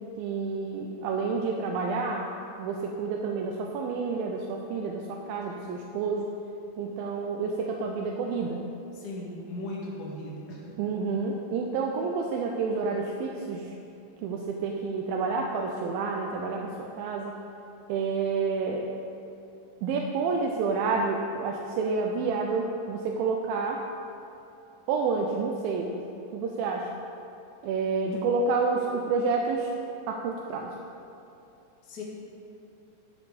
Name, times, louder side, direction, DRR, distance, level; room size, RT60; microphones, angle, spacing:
voice 1, 0.2-6.3 6.8-8.6 10.8-13.7 14.2-17.3 17.9-18.9 19.8-23.8 24.9-26.0 26.3-26.9 27.6-29.7 30.1-30.7, right 4 dB, 85° right, 1 dB, 2.4 m, -29 dB
voice 2, 8.9-10.7 31.8-32.0, left 1 dB, 35° left, -5 dB, 1.8 m, -37 dB
13.5 x 5.1 x 5.1 m, 2.9 s
omnidirectional pair, 4.1 m